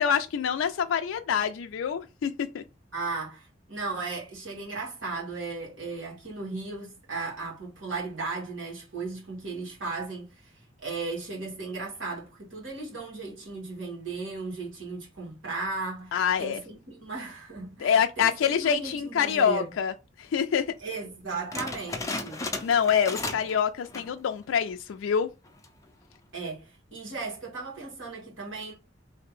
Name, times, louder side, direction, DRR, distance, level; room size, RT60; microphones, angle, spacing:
voice 1, 0.0-2.6 16.1-16.6 17.8-19.9 20.2-20.7 22.4-25.3, left 7 dB, 85° left, 0.3 m, -26 dB
voice 2, 2.9-19.7 20.8-22.4 26.3-28.7, right 3 dB, 85° right, 1.9 m, -36 dB
sound 1, 21.5-23.6 23.8-24.2 24.7-24.8 25.5-25.8, left 3 dB, 15° left, 0.5 m, -35 dB
3.2 x 2.8 x 3.7 m
head